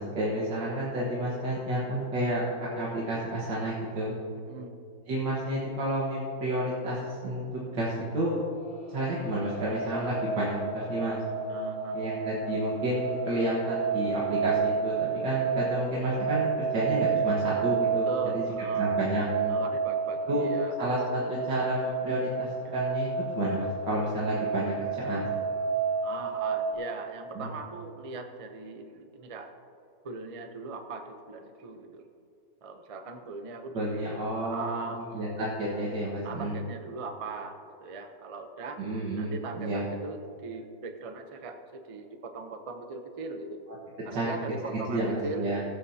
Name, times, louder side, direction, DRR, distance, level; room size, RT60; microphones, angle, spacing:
voice 1, 0.0-2.4 2.8-4.1 5.1-8.4 8.9-11.2 11.9-18.4 18.7-19.6 20.3-20.5 20.8-24.7 25.0-25.3 27.4-27.5 33.7-36.6 38.8-39.8 44.1-44.3 44.6-45.6, right 1 dB, 80° right, -5 dB, 2.1 m, -30 dB
sound 1, 8.6-26.7, right 5 dB, 55° left, 2.3 m, -31 dB
voice 2, 11.5-12.0 18.1-18.9 19.5-20.7 22.6-22.7 26.0-29.5 30.0-32.1 32.6-35.0 36.2-38.8 39.2-43.6 44.0-45.5, right 3 dB, 50° right, 6 dB, 0.4 m, -40 dB
21.0 x 8.1 x 2.8 m, 2.5 s
omnidirectional pair, 1.9 m